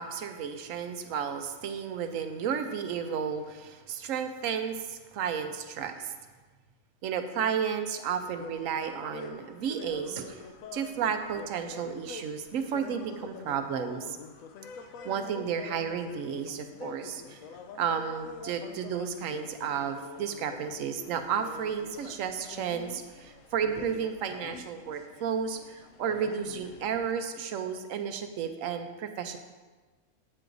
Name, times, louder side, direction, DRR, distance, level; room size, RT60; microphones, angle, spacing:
voice 1, 0.0-6.1 7.0-10.4 10.7-14.2 15.0-17.4 17.8-29.4, right 7 dB, 75° right, 7 dB, 1.0 m, -32 dB
sound 1, 8.2-27.1, left 5 dB, 85° left, 1.0 m, -46 dB
8.5 x 7.7 x 2.6 m, 1.3 s
omnidirectional pair, 1.4 m